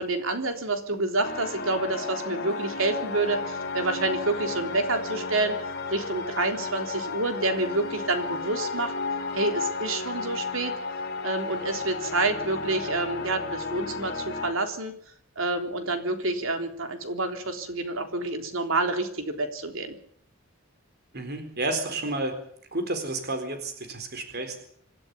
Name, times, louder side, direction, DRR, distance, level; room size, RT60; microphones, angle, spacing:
voice 1, 0.0-5.6 5.9-8.9 9.3-10.7 11.2-14.9 15.4-20.0, right 2 dB, 65° right, 6 dB, 3.6 m, -28 dB
sound 1, 1.2-14.5, left 4 dB, 50° left, 4.0 m, -33 dB
voice 2, 21.1-22.4 22.7-24.6, right 2 dB, 50° right, 7 dB, 4.1 m, -31 dB
26.5 x 13.0 x 9.7 m, 0.64 s
head